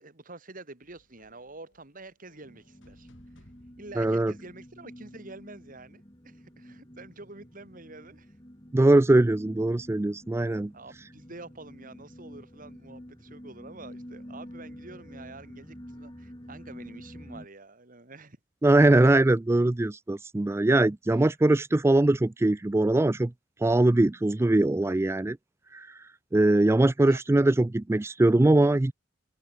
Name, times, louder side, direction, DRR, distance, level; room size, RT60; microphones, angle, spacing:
voice 1, 0.0-3.1 3.4-3.5 3.8-8.3 10.7-18.4 27.1-27.2, right 2 dB, 45° right, 2.6 m, -47 dB
sound 1, 0.8-5.4, left 1 dB, 80° left, 5.4 m, -61 dB
sound 2, 2.4-17.5, equal, 20° left, 5.3 m, -48 dB
voice 2, 4.0-4.3 8.7-10.7 18.6-23.3 23.6-25.4 25.7-26.0 26.3-28.9, right 2 dB, 15° right, 0.4 m, -22 dB
open air
head